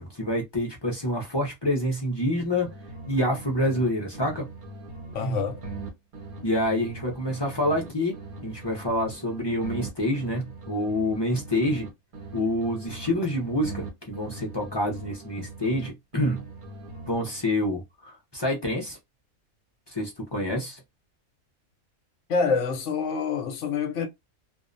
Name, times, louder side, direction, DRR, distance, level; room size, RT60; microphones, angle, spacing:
voice 1, 0.0-2.7 3.1-4.4 5.2-5.4 6.4-8.1 8.4-11.9 12.3-16.4 17.1-19.0 19.9-20.8, left 1 dB, 35° left, 0.4 m, -27 dB
sound 1, 2.3-3.9 4.1-7.9 8.1-11.9 12.1-15.9 16.1-17.6, right 3 dB, 85° right, 1.2 m, -41 dB
voice 2, 5.1-5.6 22.3-24.1, left 5 dB, 65° left, 0.9 m, -26 dB
2.5 x 2.0 x 2.5 m
omnidirectional pair, 1.5 m